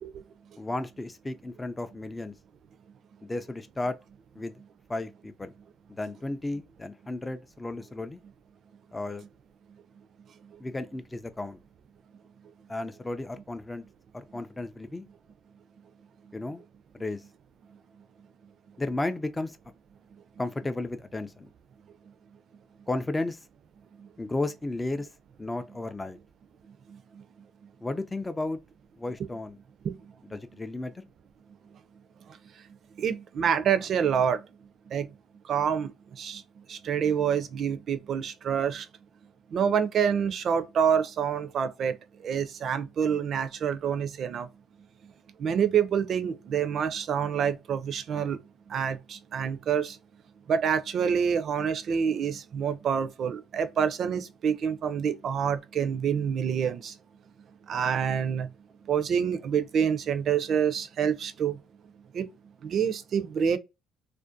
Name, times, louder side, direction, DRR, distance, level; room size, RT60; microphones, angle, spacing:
voice 1, 0.6-2.3 3.2-4.0 4.3-4.5 4.9-5.5 5.9-8.2 8.9-9.3 10.6-11.6 12.7-13.8 14.1-15.0 16.3-16.6 16.9-17.2 18.8-19.6 20.4-21.5 22.9-23.4 24.2-25.1 25.4-26.2 27.8-28.6 29.0-29.6 30.3-31.0, left 2 dB, 20° left, 0.3 m, -33 dB
voice 2, 33.0-34.4 34.9-35.1 35.5-35.9 36.2-36.4 36.7-38.9 39.5-41.9 42.2-44.5 45.4-48.4 48.7-50.0 50.5-56.9 57.7-58.5 58.9-61.6 62.1-62.3 62.6-63.6, right 7 dB, 55° right, 0.4 m, -27 dB
2.5 x 2.1 x 2.5 m
hypercardioid pair, 65°, 0 cm